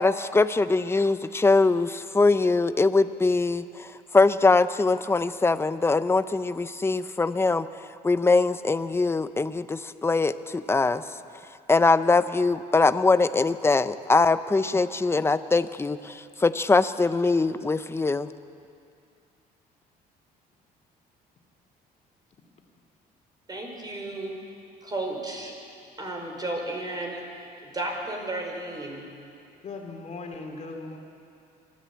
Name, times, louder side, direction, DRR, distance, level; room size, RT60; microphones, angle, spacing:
voice 1, 0.0-11.0 11.7-18.3, left 3 dB, 15° left, 13 dB, 0.7 m, -22 dB
voice 2, 23.5-24.4 24.8-25.5 26.0-29.1, right 2 dB, 25° right, 1 dB, 4.7 m, -33 dB
voice 3, 29.6-31.0, left 3 dB, 40° left, 2 dB, 2.9 m, -38 dB
23.5 x 13.5 x 8.3 m, 2.5 s
cardioid pair, 110°, 17 cm